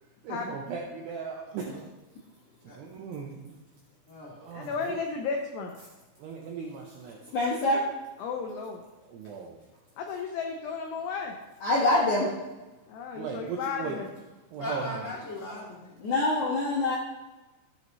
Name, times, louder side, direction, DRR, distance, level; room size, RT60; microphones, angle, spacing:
voice 1, 0.2-1.8 2.8-3.5 4.4-5.0 6.2-7.2 9.1-9.6 13.1-14.0 14.5-15.0, right 5 dB, 80° right, 0 dB, 2.4 m, -37 dB
voice 2, 1.5-1.8 2.6-2.8 4.1-4.7 14.6-16.0, left 1 dB, 25° left, -7 dB, 1.8 m, -39 dB
voice 3, 4.5-5.7 8.2-8.8 10.0-11.3 12.9-14.1, left 5 dB, 85° left, 2 dB, 2.3 m, -33 dB
voice 4, 7.3-7.9 11.6-12.3 16.0-17.0, left 2 dB, 65° left, -6 dB, 1.9 m, -25 dB
14.0 x 7.8 x 3.1 m, 1.1 s
omnidirectional pair, 5.9 m